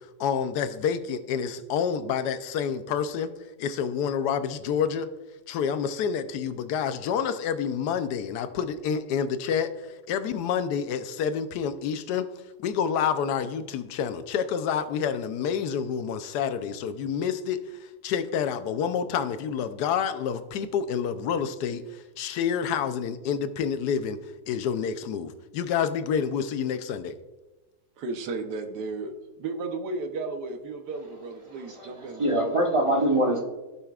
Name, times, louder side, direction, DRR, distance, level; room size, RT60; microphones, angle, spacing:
voice 1, 0.2-3.3 3.6-5.1 5.5-12.3 12.6-24.2 24.5-27.1, left 7 dB, 85° left, 11 dB, 1.2 m, -28 dB
voice 2, 28.0-29.1 29.4-32.3, right 3 dB, 85° right, 6 dB, 1.4 m, -34 dB
voice 3, 31.6-33.4, right 1 dB, 20° right, -1 dB, 1.1 m, -24 dB
15.0 x 5.7 x 2.4 m, 1.1 s
omnidirectional pair, 1.7 m